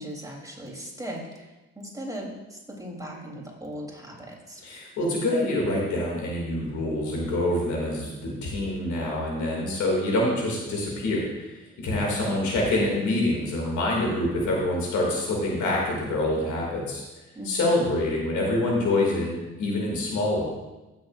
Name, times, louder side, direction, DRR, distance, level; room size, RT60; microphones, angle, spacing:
voice 1, 0.0-4.6 12.0-12.4 17.3-18.0, equal, 10° right, -2 dB, 3.5 m, -38 dB
voice 2, 4.6-17.0 17.4-20.4, left 1 dB, 75° left, -2 dB, 2.6 m, -26 dB
15.0 x 7.1 x 2.6 m, 1.1 s
hypercardioid pair, 45°, 30 cm